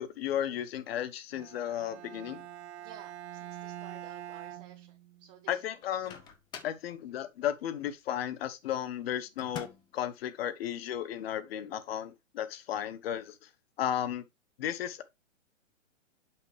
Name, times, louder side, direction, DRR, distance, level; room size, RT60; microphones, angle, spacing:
voice 1, 0.0-2.4 5.5-6.2 6.6-9.7 9.9-13.3 13.8-14.2 14.6-15.0, left 10 dB, 50° left, 1.1 m, -34 dB
Bowed string instrument, 1.3-5.4, right 12 dB, 60° right, 0.9 m, -45 dB
voice 2, 2.8-5.6 6.2-6.3, right 10 dB, 30° right, 1.1 m, -53 dB
Microwave oven, 5.8-6.9 9.4-10.0, left 7 dB, 10° left, 0.5 m, -45 dB
7.7 x 5.9 x 3.2 m
hypercardioid pair, 135°, 39 cm